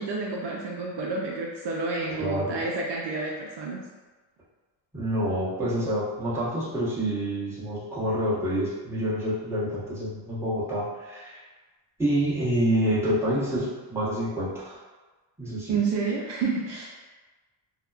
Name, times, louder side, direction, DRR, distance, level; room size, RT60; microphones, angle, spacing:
voice 1, 0.0-3.8 15.7-16.9, right 4 dB, 60° right, -2 dB, 0.5 m, -29 dB
voice 2, 2.2-2.6 4.9-11.4 12.0-14.8 15.4-15.8, equal, 5° right, -10 dB, 1.0 m, -27 dB
2.8 x 2.1 x 2.3 m, 1.3 s
cardioid pair, 80°, 49 cm